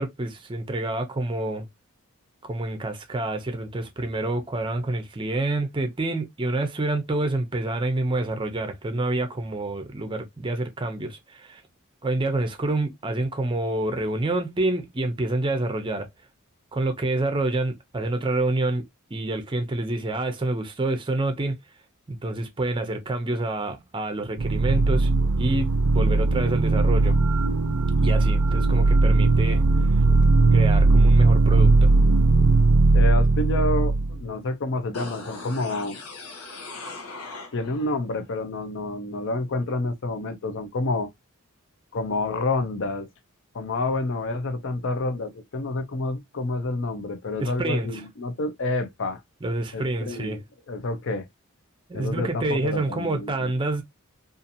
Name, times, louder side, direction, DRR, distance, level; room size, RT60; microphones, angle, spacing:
voice 1, 0.0-1.7 2.4-11.6 12.0-16.1 16.7-21.6 22.1-25.1 25.4-27.2 28.0-29.6 30.5-31.9 47.4-48.0 49.4-50.4 51.9-53.8, right 2 dB, 20° right, 0.5 m, -27 dB
sound 1, 24.4-34.2, right 3 dB, 75° right, 0.5 m, -19 dB
voice 2, 32.9-36.0 37.3-41.1 41.9-43.1 43.5-49.2 49.7-50.4 50.7-51.3 51.9-53.5, left 2 dB, 55° left, 0.5 m, -28 dB
sound 2, 34.9-37.9 38.3-38.4, left 3 dB, 85° left, 0.9 m, -39 dB
2.8 x 2.5 x 2.5 m
head